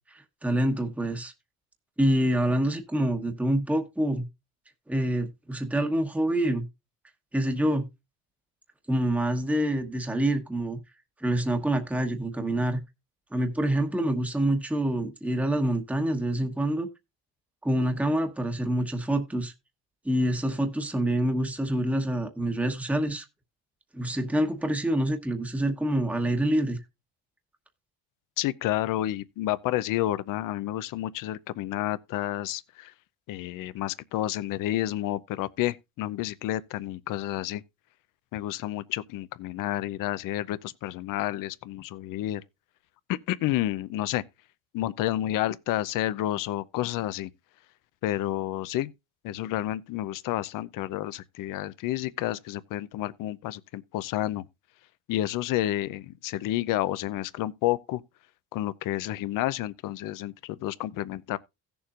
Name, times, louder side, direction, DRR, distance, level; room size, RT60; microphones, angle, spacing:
voice 1, 0.1-1.3 2.0-4.3 4.9-6.6 7.3-7.9 8.9-10.8 11.2-12.8 13.3-16.9 17.6-19.5 20.0-23.2 23.9-26.8, right 1 dB, 5° right, 1.1 m, -26 dB
voice 2, 28.4-32.9 33.3-37.6 38.3-42.4 43.1-44.2 44.7-47.3 48.0-48.9 49.2-54.4 55.1-58.0 58.5-61.4, left 14 dB, 70° left, 0.7 m, -30 dB
16.5 x 7.0 x 2.5 m
cardioid pair, 120°, 33 cm